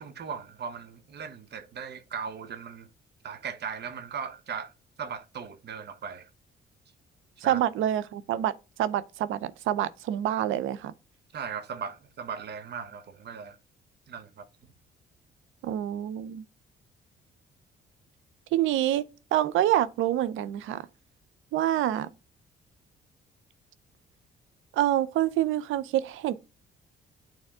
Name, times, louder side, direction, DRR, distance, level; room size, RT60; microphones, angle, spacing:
voice 1, 0.0-2.9 3.2-4.7 5.0-6.3 7.4-7.6 11.3-13.6 14.1-14.5, right 6 dB, 55° right, 1.1 m, -38 dB
voice 2, 7.4-8.5 8.8-10.9 15.6-16.4 18.5-20.9 21.5-22.1 24.7-26.3, right 12 dB, 85° right, 0.6 m, -27 dB
9.1 x 3.5 x 3.6 m
cardioid pair, 90°, 20 cm